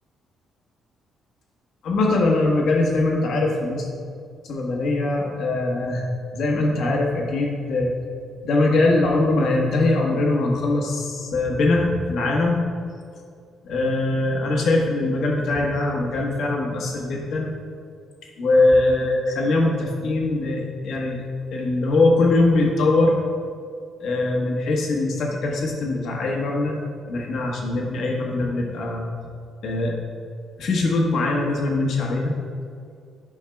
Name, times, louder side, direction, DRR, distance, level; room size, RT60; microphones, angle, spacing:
voice 1, 1.8-3.9 4.4-6.1 6.3-7.9 8.4-12.6 13.6-17.5 18.4-21.2 21.5-23.1 24.0-26.8 27.1-29.1 29.6-29.9 30.6-32.3, left 2 dB, 70° left, -1 dB, 1.3 m, -22 dB
11.0 x 5.7 x 2.3 m, 2.3 s
cardioid pair, 90°, 0 cm